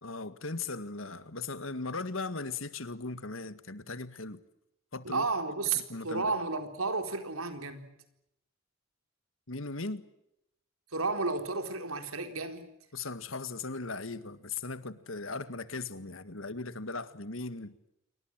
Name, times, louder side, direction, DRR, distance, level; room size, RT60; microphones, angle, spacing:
voice 1, 0.0-4.4 4.9-5.3 5.9-6.3 9.5-10.1 12.9-17.8, left 3 dB, 70° left, 1.9 m, -38 dB
voice 2, 5.0-7.9 10.9-12.7, right 3 dB, 90° right, 4.2 m, -32 dB
28.5 x 24.0 x 7.6 m
head